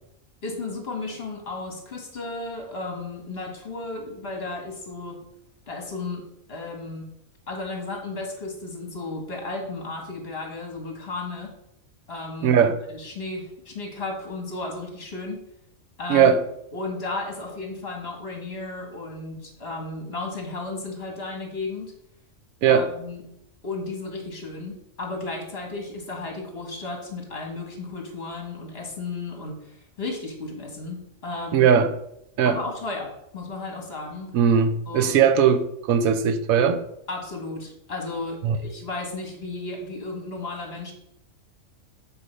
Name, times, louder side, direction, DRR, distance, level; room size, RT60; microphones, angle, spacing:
voice 1, 0.4-5.2 5.7-6.2 6.5-7.1 7.5-11.5 12.1-12.6 12.9-15.4 16.0-16.4 16.7-21.9 22.7-23.2 23.6-31.7 32.4-34.3 34.9-35.2 37.1-40.9, left 3 dB, 45° left, 2 dB, 1.9 m, -34 dB
voice 2, 12.4-12.8 16.1-16.4 22.6-22.9 31.5-31.9 32.4-32.6 34.3-36.8 38.4-38.6, right 7 dB, 90° right, 10 dB, 1.1 m, -19 dB
8.4 x 4.5 x 5.5 m, 0.79 s
omnidirectional pair, 1.4 m